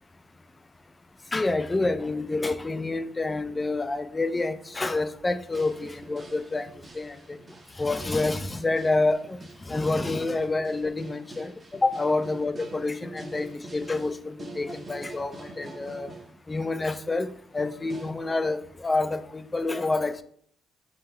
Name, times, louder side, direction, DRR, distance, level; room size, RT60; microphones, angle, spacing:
voice 1, 1.3-6.7 6.9-7.4 7.8-9.4 9.7-11.5 11.8-16.1 16.5-17.3 17.5-20.2, left 2 dB, 20° left, 10 dB, 0.3 m, -28 dB
sound 1, 5.4-16.3 16.6-18.1, right 2 dB, 35° right, 0.7 m, -45 dB
3.7 x 2.0 x 4.3 m, 0.62 s
cardioid pair, 90°, 0 cm